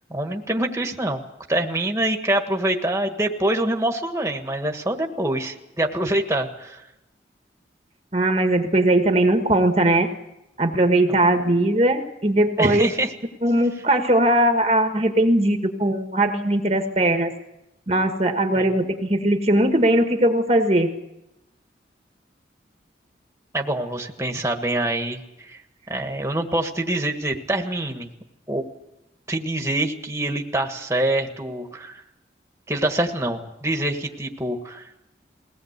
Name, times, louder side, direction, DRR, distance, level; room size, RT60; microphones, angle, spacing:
voice 1, 0.1-1.2 1.5-6.9 11.1-11.2 12.6-13.1 18.5-18.7 23.5-25.6 25.9-28.1 28.5-28.6 29.3-32.0 32.7-34.8, right 1 dB, 15° right, 4 dB, 1.6 m, -25 dB
voice 2, 8.1-10.1 10.6-12.9 13.4-17.3 17.9-20.9, right 1 dB, 35° right, 5 dB, 1.4 m, -19 dB
21.5 x 18.0 x 8.1 m, 0.91 s
head